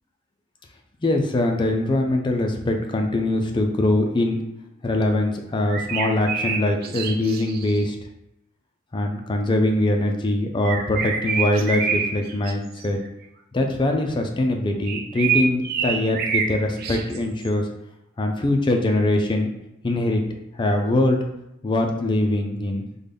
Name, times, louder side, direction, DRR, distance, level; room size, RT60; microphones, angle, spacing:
voice 1, 1.0-4.4 4.8-8.0 8.9-13.0 13.5-17.6 18.2-19.5 19.8-20.2 20.6-21.2 21.6-22.9, left 1 dB, 25° left, 3 dB, 0.4 m, -22 dB
sound 1, 5.7-7.8 10.6-12.5 12.8-13.1 14.8-16.5 16.8-17.5, right 6 dB, 50° right, 0.3 m, -26 dB
3.7 x 2.2 x 3.4 m, 0.85 s
head